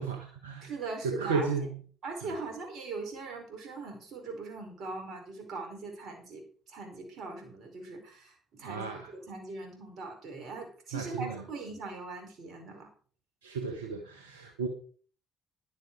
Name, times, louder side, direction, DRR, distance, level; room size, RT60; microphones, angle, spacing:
voice 1, 0.0-0.7 1.0-1.7 8.6-9.1 10.9-11.4 13.4-14.7, right 4 dB, 85° right, 3 dB, 1.3 m, -33 dB
voice 2, 0.6-1.7 2.0-12.9, right 3 dB, 55° right, 3 dB, 4.9 m, -41 dB
11.0 x 9.4 x 4.8 m, 0.44 s
hypercardioid pair, 50°, 0 cm